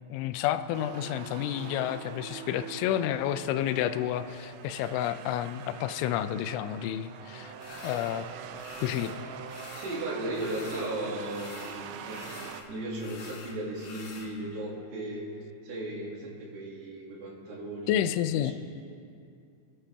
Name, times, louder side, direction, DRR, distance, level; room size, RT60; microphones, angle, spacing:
voice 1, 0.1-7.5 7.8-8.3 8.8-9.2 17.9-18.5, left 11 dB, 80° left, 10 dB, 2.9 m, -30 dB
sound 1, 0.7-12.6, right 7 dB, 80° right, 2.6 m, -44 dB
sound 2, 7.6-8.2 8.5-9.2 9.5-11.0 11.2-14.3, left 4 dB, 65° left, 1.9 m, -47 dB
voice 2, 9.7-15.3 15.6-18.5, right 1 dB, 60° right, -4 dB, 4.2 m, -36 dB
27.5 x 10.0 x 3.4 m, 2.5 s
omnidirectional pair, 5.7 m